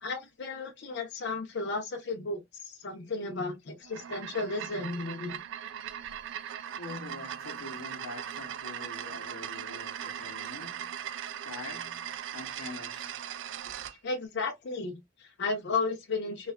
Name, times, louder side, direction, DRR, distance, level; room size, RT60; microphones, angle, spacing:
voice 1, 0.0-5.4 14.0-16.5, left 3 dB, 55° left, 0.6 m, -34 dB
sound 1, 3.8-14.0, right 9 dB, 65° right, 0.3 m, -39 dB
voice 2, 6.8-13.1 13.6-13.8, left 3 dB, 90° left, 0.8 m, -45 dB
2.5 x 2.3 x 2.2 m
head